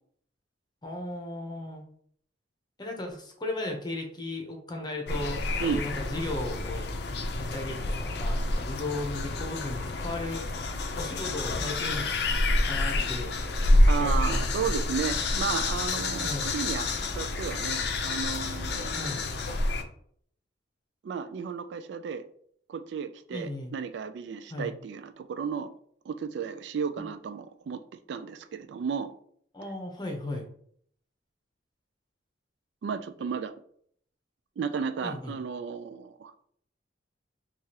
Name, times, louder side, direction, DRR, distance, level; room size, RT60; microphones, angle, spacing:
voice 1, 0.8-1.8 2.8-6.9 7.3-10.4 10.9-12.1 12.6-13.3 13.7-14.9 16.2-16.5 18.9-19.2 23.3-23.7 24.5-24.7 27.0-27.1 29.5-30.5 35.0-35.4, left 2 dB, 25° left, 0.8 m, -36 dB
sound 1, 5.1-19.8, left 2 dB, 60° left, 0.5 m, -28 dB
voice 2, 13.9-19.2 21.0-22.3 22.7-25.7 26.1-27.8 28.1-29.1 32.8-33.5 34.6-36.3, right 6 dB, 70° right, 0.3 m, -33 dB
4.6 x 2.4 x 2.8 m
head